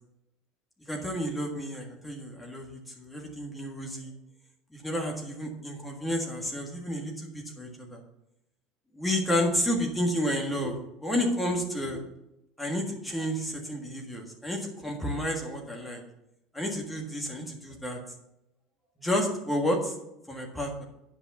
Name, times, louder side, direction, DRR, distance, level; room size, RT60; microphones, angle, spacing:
voice 1, 0.9-4.1 4.7-8.0 8.9-12.0 12.6-16.0 16.5-18.0 19.0-19.9 20.3-20.8, equal, 5° left, 0 dB, 1.6 m, -31 dB
9.9 x 5.4 x 7.0 m, 0.87 s
cardioid pair, 175°, 0 cm